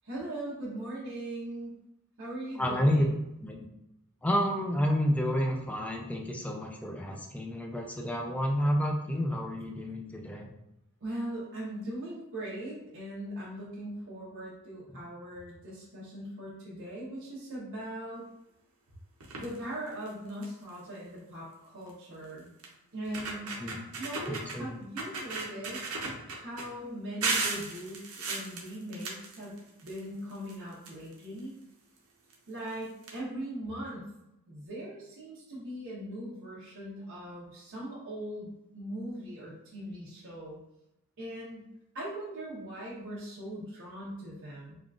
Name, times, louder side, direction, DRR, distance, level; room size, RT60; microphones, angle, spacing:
voice 1, 0.0-1.7 2.2-3.1 11.0-18.2 19.4-22.5 22.9-23.6 24.0-25.9 26.3-31.5 32.5-34.1 34.5-40.6 41.2-41.7 41.9-44.8, right 1 dB, 60° right, -7 dB, 0.9 m, -40 dB
voice 2, 2.6-3.0 3.4-3.7 4.2-10.5 23.6-23.8 24.3-24.7, equal, 5° left, 1 dB, 0.3 m, -30 dB
sound 1, 19.2-19.6 20.1-20.2 20.4-20.7 21.9-22.0 22.6-22.7 23.0-24.6 25.0-26.6 27.2-30.0 30.3-31.4 32.3-32.4 32.7-32.8 33.0-33.1, right 3 dB, 90° right, 0.7 m, -35 dB
3.6 x 2.4 x 2.4 m, 0.89 s
head